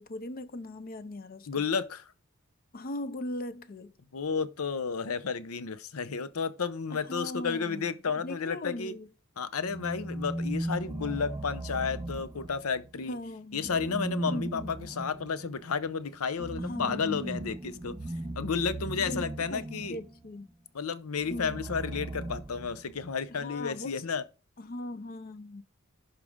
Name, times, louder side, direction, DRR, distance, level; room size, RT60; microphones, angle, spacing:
voice 1, 0.0-1.7 2.7-3.9 6.9-9.1 12.9-13.8 14.3-14.9 16.6-17.3 19.0-20.5 21.3-21.6 23.3-24.1 24.6-25.6, left 1 dB, 45° left, 0.5 m, -39 dB
voice 2, 1.5-2.1 4.1-8.9 9.4-13.2 13.5-17.9 18.4-20.0 20.7-24.2, left 5 dB, 90° left, 0.7 m, -32 dB
sound 1, 9.6-12.9 13.6-20.2 21.2-23.1, right 1 dB, 20° right, 0.5 m, -38 dB
11.5 x 4.9 x 3.6 m
head